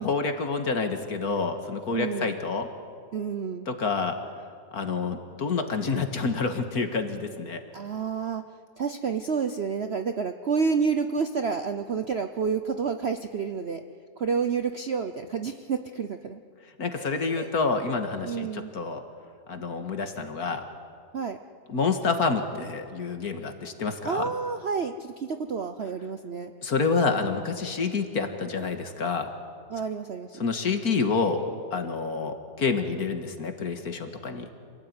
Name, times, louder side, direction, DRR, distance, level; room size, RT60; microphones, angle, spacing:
voice 1, 0.0-2.7 3.7-4.2 4.7-7.6 16.8-19.0 19.5-20.6 21.7-24.3 26.6-29.3 30.3-31.4 31.7-34.5, left 4 dB, 55° left, 6 dB, 2.2 m, -28 dB
voice 2, 1.9-2.4 3.1-3.7 7.7-8.4 8.8-13.8 14.2-16.4 16.9-17.5 18.2-18.7 21.1-21.4 24.0-26.5 29.7-30.3, right 5 dB, 50° right, 7 dB, 0.8 m, -29 dB
27.0 x 17.5 x 9.7 m, 2.2 s
omnidirectional pair, 2.0 m